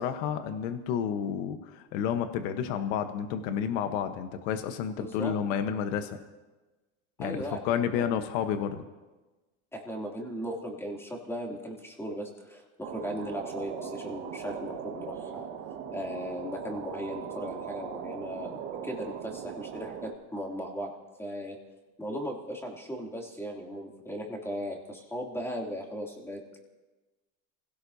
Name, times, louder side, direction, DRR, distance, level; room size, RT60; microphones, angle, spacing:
voice 1, 0.0-6.2 7.2-8.8, left 8 dB, 80° left, 8 dB, 1.2 m, -30 dB
voice 2, 4.9-5.3 7.2-8.2 9.7-15.5 15.9-20.9 21.2-21.6 22.0-26.6, equal, 5° left, -1 dB, 2.9 m, -37 dB
sound 1, 12.8-20.1, right 8 dB, 80° right, 1.7 m, -39 dB
29.0 x 16.5 x 2.8 m, 1.2 s
supercardioid pair, 125°, 37 cm